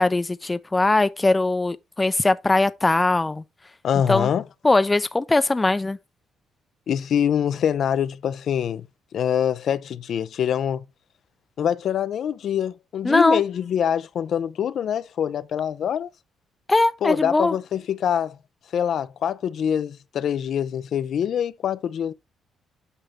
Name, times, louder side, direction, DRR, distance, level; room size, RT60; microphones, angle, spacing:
voice 1, 0.0-3.4 4.1-4.3 4.6-6.0 13.0-13.4 16.7-17.5, left 2 dB, 20° left, 0.6 m, -20 dB
voice 2, 3.8-4.4 6.9-8.9 9.1-10.8 11.6-16.1 17.0-18.4 18.7-22.1, left 9 dB, 65° left, 0.6 m, -24 dB
8.1 x 5.6 x 3.6 m
cardioid pair, 90°, 0 cm